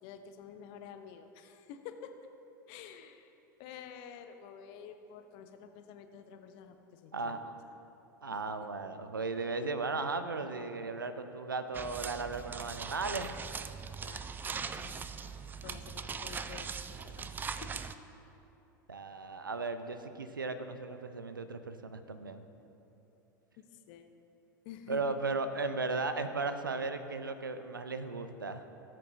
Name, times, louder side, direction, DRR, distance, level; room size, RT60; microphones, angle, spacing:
voice 1, 0.0-2.1 2.7-3.3 3.6-7.5 8.3-8.4 14.0-14.2 14.6-15.2 15.6-17.3 17.6-17.8 23.6-24.1 24.6-25.0, left 8 dB, 50° left, 7 dB, 0.8 m, -50 dB
voice 2, 8.2-13.3 18.9-22.4 24.9-28.6, right 3 dB, 85° right, 10 dB, 0.6 m, -36 dB
sound 1, 11.7-17.9, right 5 dB, 20° right, 0.4 m, -40 dB
17.5 x 7.6 x 2.7 m, 3.0 s
figure-of-eight pair, 80°, 11 cm